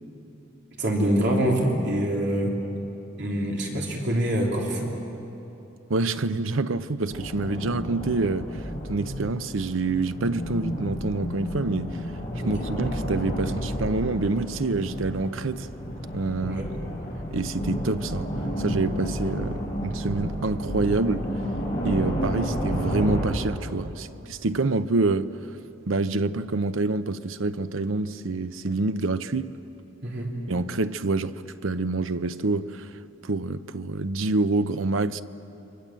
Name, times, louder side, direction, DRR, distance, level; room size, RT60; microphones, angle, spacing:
voice 1, 0.8-2.6 3.2-5.0 12.4-12.5 16.4-16.7 30.0-30.3, right 1 dB, 55° right, 3.4 m, -25 dB
voice 2, 5.9-8.5 8.9-12.0 12.5-15.7 16.1-16.6 17.3-18.3 18.6-21.3 21.8-25.3 25.9-29.5 30.5-32.9 33.2-35.2, right 3 dB, 80° right, 0.7 m, -27 dB
sound 1, 7.1-23.3, equal, 20° left, 7.8 m, -31 dB
28.5 x 24.0 x 7.5 m
head